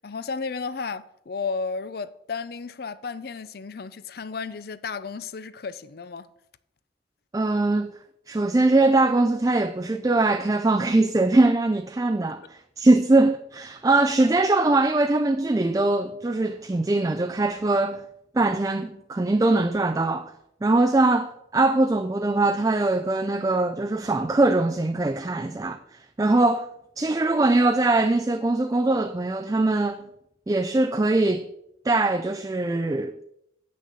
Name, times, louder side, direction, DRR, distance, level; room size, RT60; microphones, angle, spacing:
voice 1, 0.0-6.3, left 4 dB, 55° left, 0.5 m, -33 dB
voice 2, 7.3-7.9 8.3-18.1 18.3-20.3 20.6-26.7 27.0-30.1 30.5-31.5 31.8-33.2, right 2 dB, 20° right, 0.3 m, -22 dB
8.2 x 6.3 x 6.9 m
head